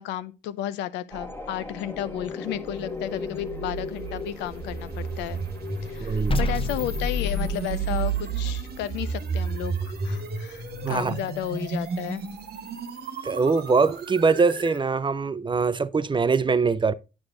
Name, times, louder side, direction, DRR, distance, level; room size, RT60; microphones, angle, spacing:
voice 1, 0.0-5.4 5.8-12.2, left 12 dB, 90° left, 0.5 m, -33 dB
sound 1, 1.1-12.7, left 4 dB, 10° left, 1.3 m, -40 dB
sound 2, 2.7-14.8, right 3 dB, 65° right, 1.3 m, -31 dB
voice 2, 6.0-6.4 10.8-11.2 13.2-16.9, right 4 dB, 25° right, 0.6 m, -23 dB
sound 3, 6.3-8.3, left 4 dB, 30° left, 0.8 m, -32 dB
9.6 x 6.1 x 2.5 m
supercardioid pair, 55°, 18 cm